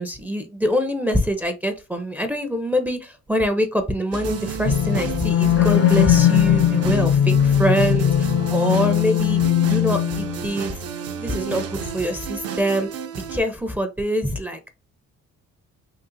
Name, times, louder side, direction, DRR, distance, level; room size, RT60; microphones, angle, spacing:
voice 1, 0.0-9.4 9.7-10.7 11.2-12.9 13.3-14.7, equal, 5° right, 0.5 m, -24 dB
sound 1, 4.1-13.4, right 6 dB, 55° right, 0.6 m, -31 dB
sound 2, 4.7-10.5, left 10 dB, 50° left, 0.4 m, -19 dB
3.8 x 2.4 x 2.6 m
cardioid pair, 90°, 30 cm